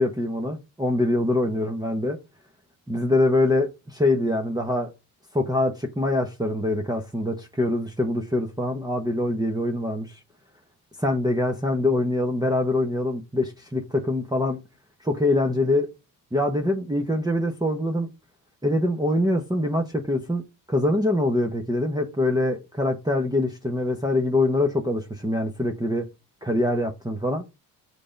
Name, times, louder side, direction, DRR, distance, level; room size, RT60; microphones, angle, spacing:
voice 1, 0.0-2.2 2.9-4.9 5.3-10.2 11.0-14.6 15.0-15.9 16.3-18.1 18.6-26.1 26.4-27.4, left 1 dB, 10° right, 1.1 m, -24 dB
6.6 x 3.9 x 5.1 m
supercardioid pair, 60°, 44 cm